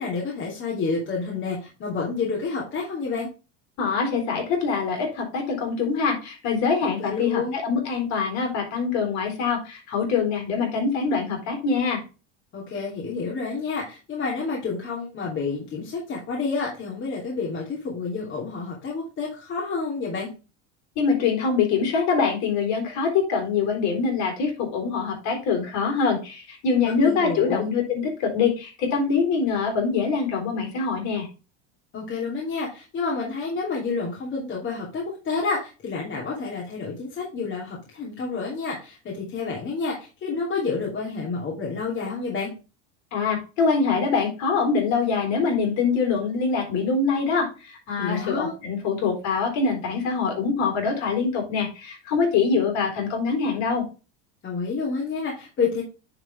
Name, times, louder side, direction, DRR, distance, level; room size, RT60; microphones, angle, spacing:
voice 1, 0.0-3.3 6.8-7.6 12.5-20.3 26.8-27.7 31.9-42.5 48.0-48.5 54.4-55.8, left 4 dB, 35° left, -4 dB, 2.9 m, -29 dB
voice 2, 3.8-12.0 21.0-31.3 43.1-53.8, left 5 dB, 55° left, 2 dB, 4.1 m, -24 dB
9.9 x 4.3 x 3.4 m, 0.31 s
supercardioid pair, 125°, 33 cm